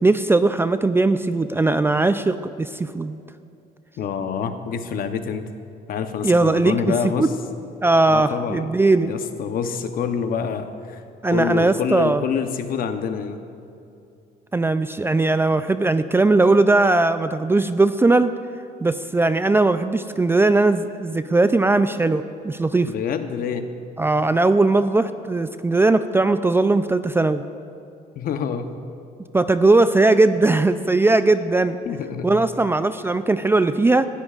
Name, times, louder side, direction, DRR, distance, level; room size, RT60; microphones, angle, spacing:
voice 1, 0.0-3.2 6.2-7.3 7.8-9.1 11.2-12.2 14.5-18.3 18.8-22.9 24.0-27.4 29.3-31.8 32.2-34.1, right 2 dB, 15° right, 11 dB, 0.3 m, -19 dB
voice 2, 4.0-5.4 5.9-7.3 8.1-8.7 9.1-11.0 11.3-13.4 22.9-23.7 28.2-28.7 31.9-32.3, left 7 dB, 60° left, 8 dB, 0.9 m, -26 dB
18.5 x 13.0 x 2.5 m, 2.6 s
cardioid pair, 110°, 17 cm